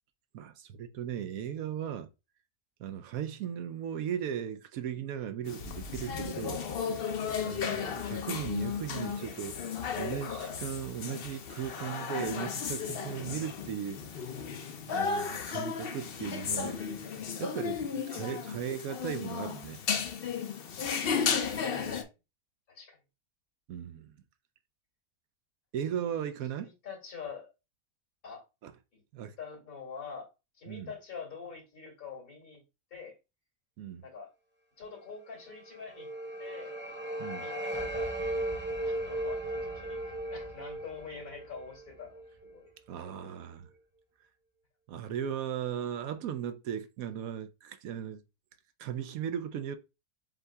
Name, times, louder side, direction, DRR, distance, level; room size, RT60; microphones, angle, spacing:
voice 1, 0.3-2.1 2.8-6.6 7.4-14.2 14.9-16.8 17.4-19.8 23.7-24.1 25.7-26.7 28.6-28.7 29.1-29.4 30.7-30.9 33.8-34.0 37.2-37.5 42.9-43.7 44.9-48.2 48.8-49.8, right 9 dB, 75° right, 1.0 m, -37 dB
sound 1, 5.5-22.0, left 6 dB, 55° left, 0.7 m, -34 dB
voice 2, 21.4-22.1 22.7-23.0 26.6-27.5 28.2-28.4 28.9-29.0 29.4-30.3 30.6-32.6 32.9-33.1 34.0-34.3 34.8-36.1 36.4-36.8 37.3-38.2 38.8-42.7 43.0-43.3, left 5 dB, 80° left, 2.8 m, -45 dB
sound 2, 35.5-42.5, right 1 dB, 15° right, 0.5 m, -36 dB
7.5 x 2.7 x 2.3 m
omnidirectional pair, 1.5 m